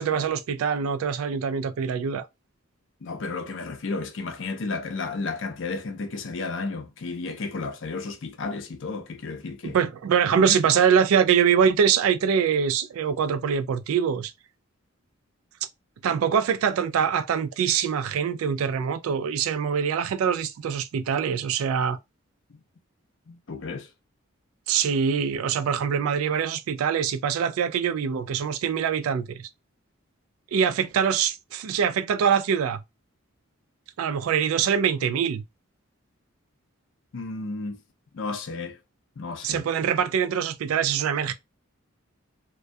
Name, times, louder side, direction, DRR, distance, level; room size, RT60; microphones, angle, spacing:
voice 1, 0.0-2.3 9.7-14.3 16.0-22.0 24.7-29.5 30.5-32.8 34.0-35.4 39.4-41.3, right 7 dB, 80° right, 0.3 m, -24 dB
voice 2, 3.0-9.8 10.3-10.5 22.5-22.6 23.3-23.9 37.1-37.8 38.1-38.8 39.2-39.6, left 3 dB, 60° left, 0.5 m, -33 dB
2.2 x 2.2 x 2.5 m
head